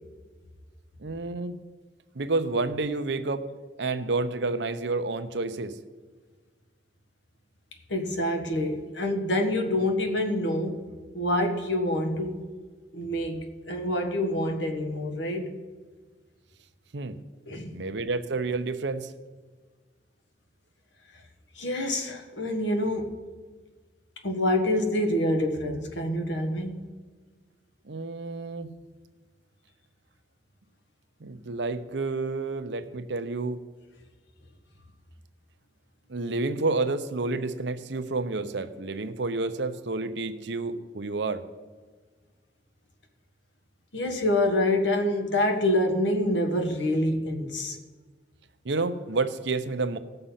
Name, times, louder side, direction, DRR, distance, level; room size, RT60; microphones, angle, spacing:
voice 1, 1.0-1.6 2.1-3.5 3.8-5.8 16.9-17.2 17.7-19.1 27.9-28.7 31.2-33.6 36.1-41.4 48.6-50.0, right 3 dB, 75° right, 0.8 m, -29 dB
voice 2, 7.9-10.9 11.1-12.5 12.9-15.6 17.5-17.8 21.6-23.2 24.2-26.8 43.9-47.8, left 1 dB, 90° left, 1.6 m, -26 dB
17.0 x 6.7 x 5.7 m
head